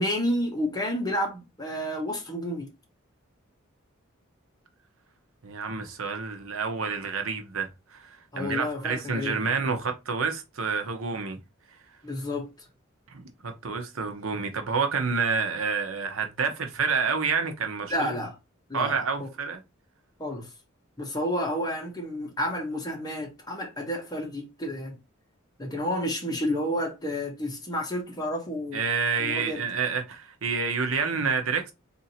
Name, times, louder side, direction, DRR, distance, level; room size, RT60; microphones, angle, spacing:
voice 1, 0.0-2.7 8.3-9.4 12.0-12.5 17.9-18.3 18.7-19.3 20.2-20.5 21.0-25.0 25.6-28.8 29.2-29.7, left 1 dB, 20° left, 1.3 m, -30 dB
voice 2, 5.4-11.4 13.1-18.1 18.7-19.6 28.7-31.7, right 5 dB, 85° right, 0.9 m, -29 dB
3.7 x 2.8 x 4.2 m
head